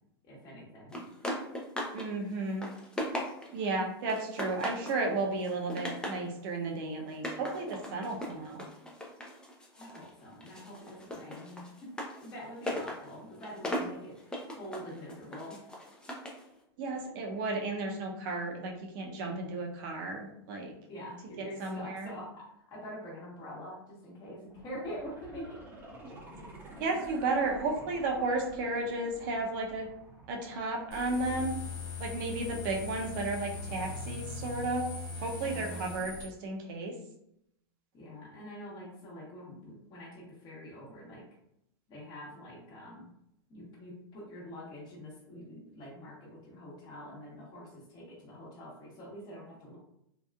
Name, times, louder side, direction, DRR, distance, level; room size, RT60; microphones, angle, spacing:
voice 1, 0.2-1.0 9.8-12.0 12.2-15.6 20.9-25.6 35.4-35.8 37.9-41.3 41.9-43.1 43.5-49.8, equal, 30° left, -4 dB, 1.0 m, -45 dB
sound 1, 0.9-2.1 2.4-3.6 4.1-5.0 5.4-6.3 7.1-10.1 10.4-16.4, equal, 5° left, 0.4 m, -38 dB
voice 2, 1.9-2.7 3.5-8.7 16.8-20.7 21.4-22.2 26.0-26.1 26.8-29.9 30.3-31.5 32.0-34.9 35.2-36.9, right 2 dB, 55° right, 1 dB, 0.7 m, -33 dB
sound 2, 24.5-31.5 31.8-31.9, right 1 dB, 15° right, 0.8 m, -49 dB
sound 3, 30.9-36.2, left 3 dB, 60° left, 1.0 m, -40 dB
2.8 x 2.3 x 2.3 m, 0.78 s
hypercardioid pair, 120°, 13 cm